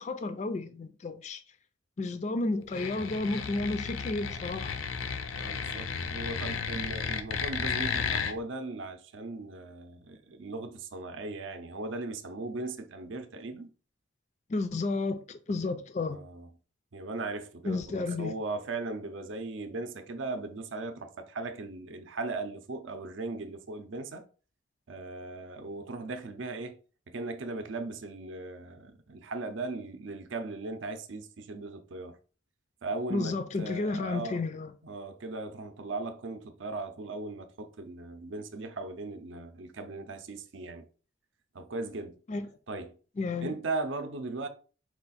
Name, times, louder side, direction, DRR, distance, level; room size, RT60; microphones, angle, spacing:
voice 1, 0.0-1.4 2.0-4.7 14.5-16.2 17.6-18.3 33.1-34.7 42.3-42.5 43.2-43.5, left 3 dB, 35° left, 0.3 m, -32 dB
sound 1, 2.7-8.3, left 6 dB, 85° left, 0.5 m, -33 dB
voice 2, 5.3-13.7 16.1-16.5 16.9-24.2 24.9-26.8 27.1-32.1 32.8-34.4 34.8-40.9 41.5-42.1 42.7-42.9 43.4-44.5, right 3 dB, 75° right, 0.6 m, -38 dB
4.5 x 2.4 x 4.0 m
head